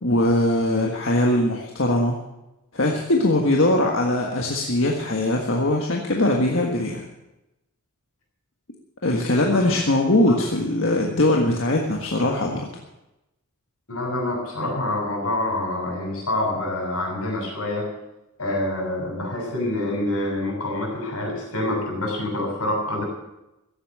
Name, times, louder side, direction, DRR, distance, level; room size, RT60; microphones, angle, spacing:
voice 1, 0.0-2.2 2.7-7.1 9.0-12.7, left 1 dB, 65° left, 0 dB, 1.6 m, -21 dB
voice 2, 13.9-17.9 18.4-23.0, left 1 dB, 90° left, 0 dB, 7.1 m, -26 dB
15.5 x 8.4 x 8.8 m, 0.95 s
head